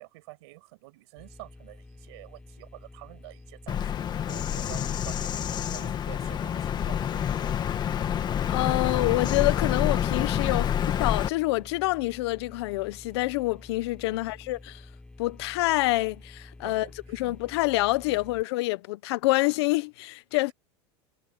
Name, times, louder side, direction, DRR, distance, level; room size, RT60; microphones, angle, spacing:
voice 1, 0.0-4.0 4.3-7.9 10.4-10.8 14.1-14.5 16.6-17.4 18.1-18.5, right 22 dB, 70° right, 7.3 m, -48 dB
sound 1, 1.2-18.4, left 2 dB, 10° left, 3.4 m, -49 dB
Bird vocalization bird call bird song, 3.7-11.3, left 9 dB, 30° left, 1.8 m, -28 dB
voice 2, 8.5-10.7 11.0-14.8 15.2-16.9 17.1-20.5, left 20 dB, 75° left, 1.1 m, -27 dB
supercardioid pair, 125°, 14 cm